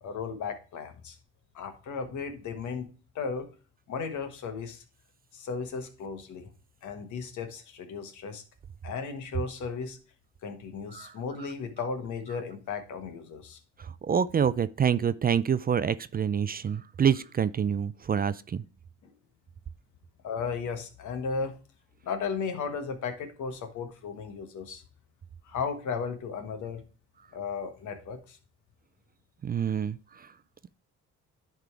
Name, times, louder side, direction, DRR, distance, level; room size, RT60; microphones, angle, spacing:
voice 1, 0.0-1.2 1.5-2.9 3.1-3.5 3.9-4.8 5.3-6.5 6.8-8.4 8.8-10.0 10.4-13.6 19.0-19.1 20.2-21.5 22.0-24.8 25.4-26.8 27.3-28.4, left 5 dB, 75° left, 1.5 m, -35 dB
voice 2, 13.8-18.6 29.4-30.3, right 7 dB, 30° right, 0.4 m, -27 dB
10.5 x 3.6 x 4.6 m
cardioid pair, 90°, 30 cm